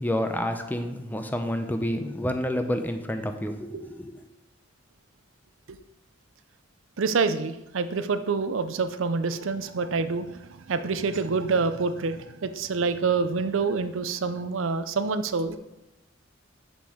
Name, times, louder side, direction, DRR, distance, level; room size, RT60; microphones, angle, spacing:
voice 1, 0.0-4.3, left 1 dB, 10° left, 7 dB, 0.6 m, -29 dB
voice 2, 7.0-15.6, right 4 dB, 85° right, 11 dB, 0.5 m, -27 dB
6.8 x 6.3 x 4.9 m, 0.93 s
head